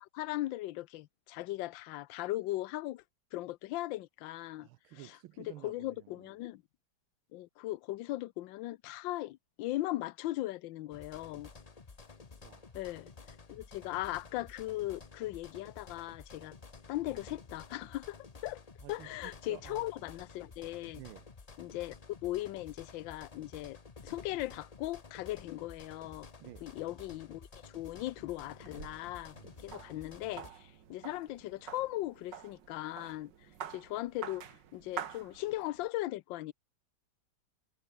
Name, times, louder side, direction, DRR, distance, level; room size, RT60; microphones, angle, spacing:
voice 1, 0.0-3.0 3.3-4.7 4.9-6.6 7.3-11.5 12.7-16.6 16.9-18.2 18.4-18.6 18.9-21.0 21.6-23.8 24.0-26.3 26.6-33.3 33.7-36.5, left 16 dB, 70° left, 1.3 m, -38 dB
voice 2, 4.6-6.3 12.4-12.8 18.8-19.9 20.9-21.3 26.4-26.7 29.4-29.5, right 16 dB, 80° right, 1.5 m, -52 dB
sound 1, 10.9-30.5, left 4 dB, 30° left, 0.8 m, -52 dB
sound 2, 28.3-35.9, right 9 dB, 60° right, 1.9 m, -47 dB
omnidirectional pair, 2.3 m